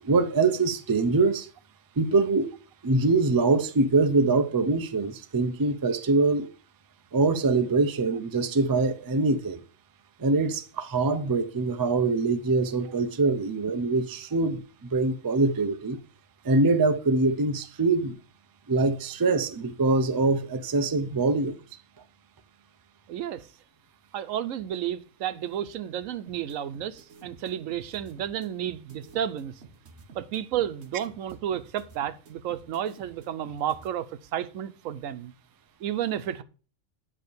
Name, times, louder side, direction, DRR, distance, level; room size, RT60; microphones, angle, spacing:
voice 1, 0.0-1.5 2.0-2.5 2.8-6.5 7.1-9.6 10.2-16.0 16.4-18.2 18.7-21.6, right 3 dB, 35° right, 0.3 m, -24 dB
voice 2, 23.1-23.5 24.1-29.6 30.1-35.3 35.8-36.4, right 10 dB, 90° right, 1.0 m, -32 dB
sound 1, 26.3-33.9, right 4 dB, 55° right, 1.5 m, -50 dB
9.9 x 3.3 x 6.7 m
omnidirectional pair, 1.3 m